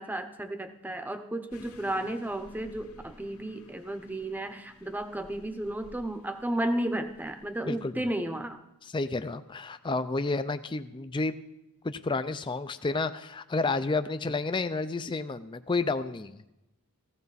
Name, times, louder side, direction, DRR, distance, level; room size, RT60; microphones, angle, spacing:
voice 1, 0.0-8.6, right 1 dB, 10° right, 8 dB, 0.8 m, -33 dB
sound 1, 1.5-7.8, left 1 dB, 80° left, 1.9 m, -54 dB
voice 2, 8.8-11.4 11.8-16.4, left 3 dB, 20° left, 10 dB, 0.4 m, -30 dB
16.0 x 15.0 x 4.1 m, 0.90 s
head